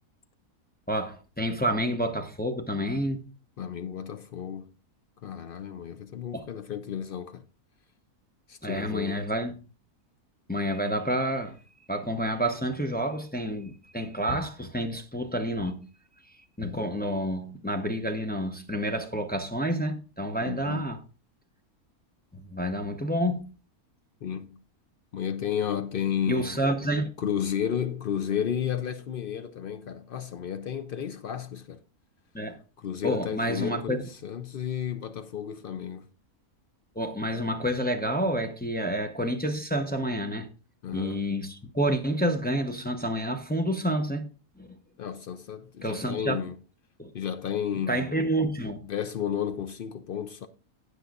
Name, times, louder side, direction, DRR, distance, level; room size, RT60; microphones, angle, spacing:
voice 1, 0.9-3.2 6.3-6.5 8.6-9.5 10.5-11.6 11.9-15.9 16.6-21.0 22.3-23.5 26.3-27.1 32.3-32.6 33.0-34.0 37.0-40.5 40.9-44.3 44.6-44.8 45.8-46.4 47.0-47.1 47.9-48.8, equal, 10° left, 0.4 m, -29 dB
voice 2, 3.6-4.7 5.2-7.5 8.5-9.3 20.4-20.9 24.2-24.6 25.1-26.6 27.2-31.8 32.8-36.1 40.8-41.4 45.0-46.6 47.1-48.2 48.8-50.5, left 9 dB, 80° left, 0.4 m, -32 dB
18.0 x 6.4 x 2.4 m
omnidirectional pair, 1.6 m